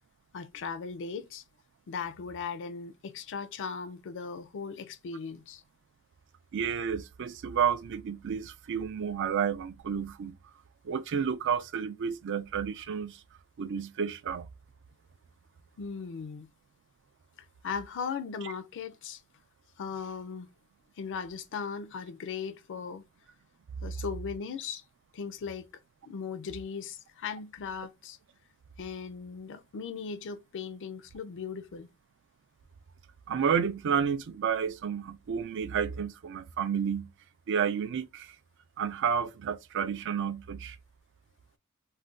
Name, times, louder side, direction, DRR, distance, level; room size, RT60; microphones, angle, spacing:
voice 1, 0.3-1.4 1.9-5.6 15.8-16.5 17.6-19.2 19.8-20.5 21.0-23.0 23.8-24.8 25.1-25.7 26.0-28.2 28.8-31.9, left 6 dB, 60° left, 0.4 m, -38 dB
voice 2, 6.5-10.3 10.8-13.2 13.6-14.5 33.3-37.1 37.5-38.3 38.8-40.8, right 7 dB, 55° right, 0.4 m, -31 dB
2.5 x 2.2 x 3.6 m
head